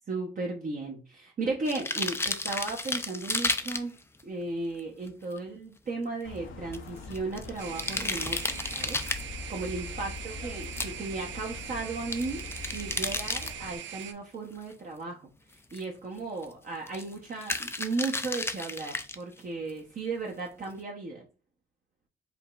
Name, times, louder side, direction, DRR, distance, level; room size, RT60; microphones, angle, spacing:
voice 1, 0.1-3.9 4.2-12.4 12.7-15.2 15.7-21.2, right 3 dB, 45° right, -1 dB, 1.0 m, -35 dB
sound 1, 1.7-4.2 4.8-4.9 5.1-5.2 5.4-5.5 6.7-9.2 10.6-10.9 12.1-13.5 14.7-14.8 15.7-15.8 16.2-16.5 16.9-17.1 17.4-19.2 19.7-19.8, left 2 dB, 10° left, 0.4 m, -32 dB
sound 2, 6.2-13.8, left 4 dB, 85° left, 0.8 m, -43 dB
sound 3, 7.6-14.1, right 9 dB, 70° right, 0.5 m, -42 dB
5.0 x 3.0 x 2.5 m, 0.33 s
cardioid pair, 90°, 20 cm